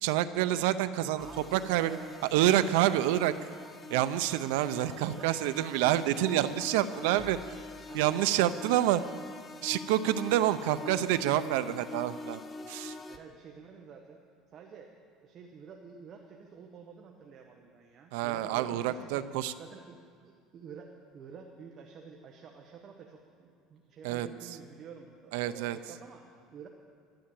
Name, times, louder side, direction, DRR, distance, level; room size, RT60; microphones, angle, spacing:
voice 1, 0.0-1.3 1.5-2.0 2.3-3.3 3.9-7.4 7.9-9.0 9.6-12.4 12.7-12.9 18.1-19.5 24.0-24.3 25.3-25.8, right 13 dB, 90° right, 11 dB, 0.6 m, -27 dB
sound 1, 1.2-13.2, left 2 dB, 15° left, 0.6 m, -45 dB
voice 2, 1.2-2.1 2.9-3.1 4.8-5.4 5.8-7.2 7.9-8.3 8.7-9.0 10.5-11.4 13.1-14.2 14.5-14.9 15.2-26.7, right 6 dB, 30° right, 2 dB, 1.0 m, -49 dB
11.5 x 11.5 x 7.6 m, 2.1 s
cardioid pair, 170°, 0 cm